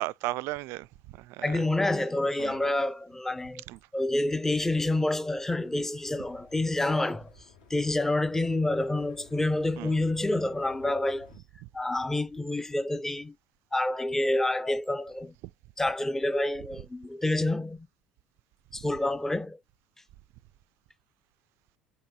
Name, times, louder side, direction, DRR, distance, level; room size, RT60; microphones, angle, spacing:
voice 1, 0.0-1.6 2.4-2.5 3.7-3.8 9.8-9.9, right 18 dB, 55° right, 0.3 m, -35 dB
voice 2, 1.4-3.6 3.9-7.3 7.7-11.3 11.7-13.3 13.7-15.3 15.8-17.9 18.7-19.6, left 1 dB, 5° left, 0.5 m, -28 dB
sound 1, 4.7-11.4, left 6 dB, 70° left, 1.7 m, -56 dB
6.6 x 2.7 x 2.8 m
figure-of-eight pair, 60°, 5 cm